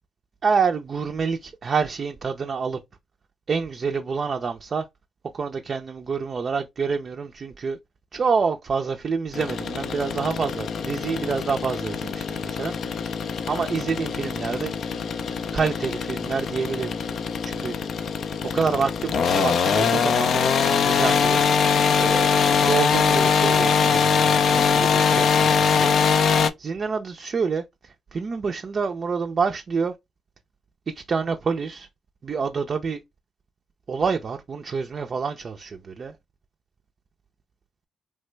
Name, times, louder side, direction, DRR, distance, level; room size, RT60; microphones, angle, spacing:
voice 1, 0.4-2.8 3.5-4.9 5.3-7.8 8.1-12.7 13.5-14.7 15.5-17.2 17.4-17.8 18.5-21.4 22.0-25.9 26.6-29.9 30.9-31.9 32.2-33.0 33.9-36.2, right 5 dB, 50° right, 0.3 m, -27 dB
sound 1, 9.3-26.5, left 6 dB, 65° left, 0.3 m, -22 dB
3.2 x 2.1 x 3.1 m
hypercardioid pair, 50°, 0 cm